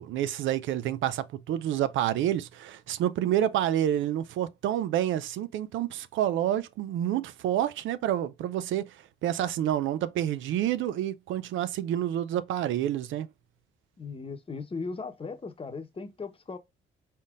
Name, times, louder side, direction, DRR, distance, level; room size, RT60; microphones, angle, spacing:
voice 1, 0.0-9.0 9.2-13.3, right 11 dB, 75° right, 0.5 m, -28 dB
voice 2, 14.0-16.6, left 4 dB, 30° left, 0.9 m, -37 dB
4.1 x 3.5 x 2.4 m
cardioid pair, 90°, 20 cm